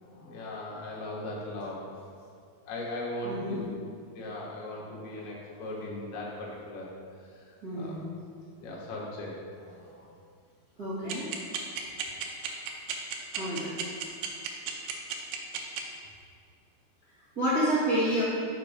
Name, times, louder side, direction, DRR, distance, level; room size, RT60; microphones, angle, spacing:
voice 1, 0.0-2.0 2.7-3.7 4.1-6.9 7.7-8.0 8.6-9.3 9.6-10.1, left 1 dB, 85° left, -4 dB, 3.3 m, -38 dB
voice 2, 3.2-3.6 7.6-8.0 10.8-11.3 13.3-13.7 17.3-18.2, equal, 40° right, -12 dB, 1.3 m, -28 dB
sound 1, 11.1-15.8, right 9 dB, 80° right, 2.2 m, -32 dB
6.8 x 5.1 x 5.1 m, 2.4 s
omnidirectional pair, 4.4 m